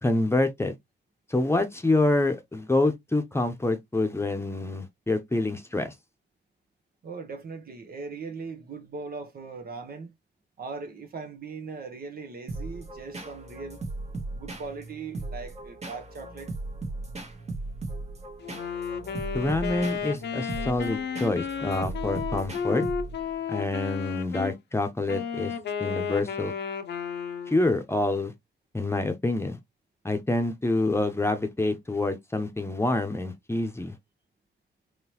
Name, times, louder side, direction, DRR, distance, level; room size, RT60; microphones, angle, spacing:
voice 1, 0.0-0.7 1.3-5.9 19.3-22.8 23.5-25.5 25.8-26.5 27.5-28.3 28.7-29.6 30.0-33.9, left 2 dB, 15° left, 0.8 m, -27 dB
voice 2, 7.0-10.1 10.6-13.8 14.3-16.5, right 4 dB, 55° right, 1.0 m, -39 dB
sound 1, 12.5-23.3, right 2 dB, 35° right, 1.3 m, -37 dB
Wind instrument woodwind instrument, 18.4-24.6 25.1-27.7, left 7 dB, 70° left, 0.7 m, -33 dB
3.8 x 3.1 x 3.0 m
cardioid pair, 85°, 18 cm